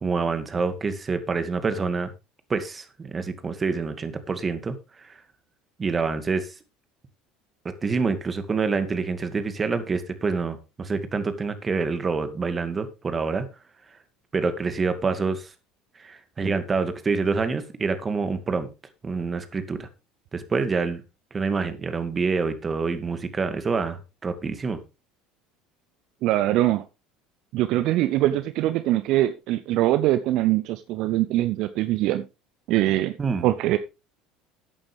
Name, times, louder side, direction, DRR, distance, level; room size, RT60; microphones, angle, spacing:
voice 1, 0.0-2.1 2.5-4.7 5.8-6.5 7.6-13.5 14.3-15.5 16.0-18.7 19.0-19.9 20.3-21.0 21.3-24.8 33.2-33.5, right 4 dB, 30° right, 10 dB, 2.2 m, -27 dB
voice 2, 26.2-26.8 27.5-32.2 32.7-33.1 33.4-33.8, right 15 dB, 60° right, 13 dB, 0.6 m, -22 dB
13.5 x 8.8 x 3.5 m, 0.28 s
hypercardioid pair, 70°, 0 cm